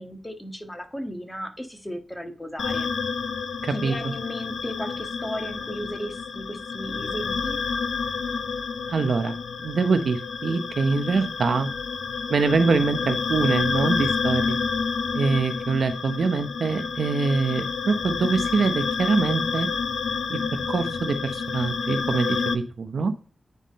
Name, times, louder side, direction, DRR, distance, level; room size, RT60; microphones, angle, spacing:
voice 1, 0.0-2.9 3.7-7.6, equal, 20° left, 5 dB, 1.5 m, -35 dB
sound 1, 2.6-22.5, left 5 dB, 80° left, 0.5 m, -29 dB
voice 2, 3.6-3.9 8.9-9.3 9.6-11.7 12.3-14.6 15.1-19.7 20.3-20.4 20.7-23.1, right 4 dB, 75° right, 8 dB, 0.7 m, -24 dB
9.3 x 3.7 x 4.1 m, 0.40 s
cardioid pair, 40°, 0 cm